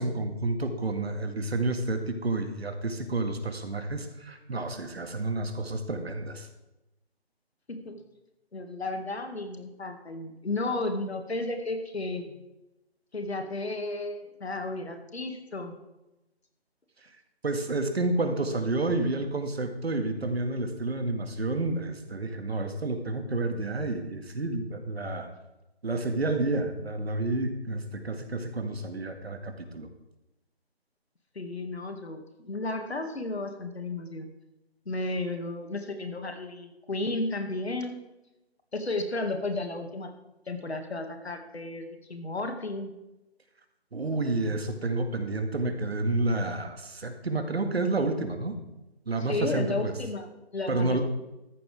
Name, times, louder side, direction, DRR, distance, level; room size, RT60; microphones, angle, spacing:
voice 1, 0.0-6.5 17.4-25.3 25.8-29.9 43.9-48.6 49.1-49.9 50.7-51.0, right 2 dB, 70° right, 6 dB, 2.0 m, -30 dB
voice 2, 7.7-8.0 8.5-12.4 13.1-15.8 31.4-34.3 34.9-38.0 38.7-40.1 40.5-42.9 49.2-51.0, left 2 dB, 75° left, 6 dB, 2.1 m, -33 dB
14.0 x 11.0 x 3.5 m, 0.97 s
figure-of-eight pair, 155°, 32 cm